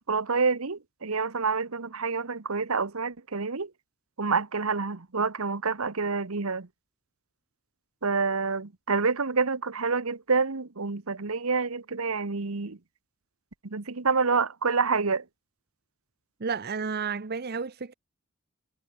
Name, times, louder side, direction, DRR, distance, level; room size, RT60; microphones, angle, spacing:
voice 1, 0.0-3.7 4.2-6.7 8.0-12.8 13.6-15.2, right 4 dB, 80° right, 1.2 m, -27 dB
voice 2, 16.4-17.9, right 5 dB, 45° right, 0.8 m, -31 dB
head